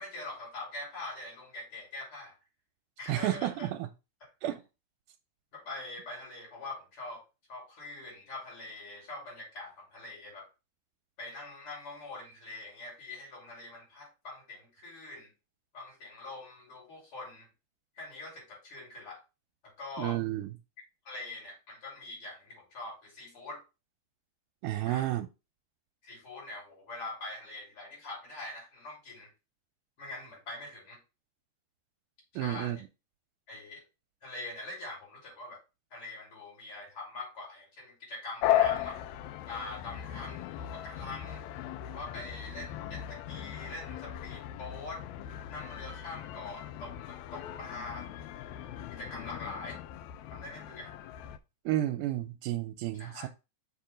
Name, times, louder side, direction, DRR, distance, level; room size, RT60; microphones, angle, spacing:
voice 1, 0.0-2.3 3.0-3.7 5.5-7.2 7.5-10.5 11.2-15.3 15.7-17.5 18.0-19.2 19.6-20.2 21.1-23.6 24.8-25.1 26.0-29.3 30.0-31.0 32.4-32.8 33.5-33.8 34.2-35.6 35.9-39.0 39.5-41.4 41.8-45.0 45.5-48.1 48.9-49.8 50.3-50.9 52.9-53.3, left 2 dB, 45° left, 3.8 m, -43 dB
voice 2, 3.1-3.9 4.4-4.6 20.0-20.5 24.6-25.3 32.4-32.8 51.7-53.3, right 14 dB, 85° right, 2.1 m, -31 dB
sound 1, 38.4-51.4, left 12 dB, 80° left, 1.8 m, -36 dB
6.1 x 3.8 x 4.9 m
omnidirectional pair, 3.5 m